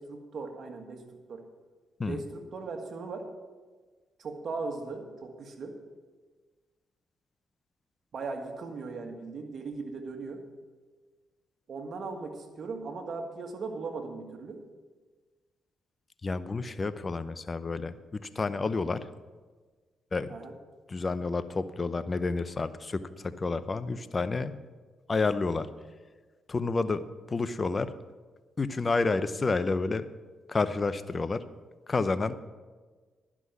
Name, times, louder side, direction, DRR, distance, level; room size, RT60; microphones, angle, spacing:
voice 1, 0.0-1.4 2.1-3.3 4.2-5.8 8.1-10.4 11.7-14.6 20.3-20.5, right 4 dB, 60° right, 4 dB, 1.7 m, -38 dB
voice 2, 16.2-19.1 20.1-20.3 20.9-24.5 25.1-25.7 26.5-27.9 28.6-30.0 30.5-31.4 31.9-32.3, left 3 dB, 35° left, 13 dB, 0.7 m, -30 dB
11.0 x 6.1 x 8.1 m, 1.4 s
supercardioid pair, 60°, 0 cm